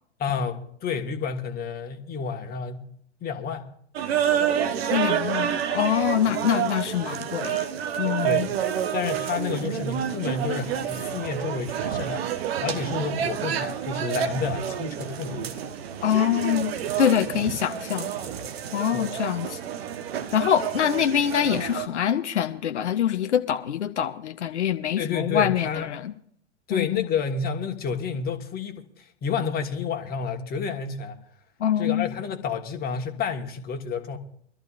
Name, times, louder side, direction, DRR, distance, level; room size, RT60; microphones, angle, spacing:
voice 1, 0.2-2.9 3.2-3.7 8.2-8.6 8.9-15.7 18.9-19.1 25.0-25.9 26.7-31.2 31.8-34.2, left 6 dB, 25° left, 1.5 m, -30 dB
sound 1, 4.0-21.9, right 9 dB, 55° right, 1.3 m, -29 dB
voice 2, 4.9-7.6 8.0-8.5 16.0-16.7 17.0-18.1 18.7-19.6 20.3-26.1 26.7-27.0 31.6-32.1, left 9 dB, 70° left, 0.8 m, -24 dB
23.5 x 13.5 x 2.5 m
figure-of-eight pair, 95°, 36 cm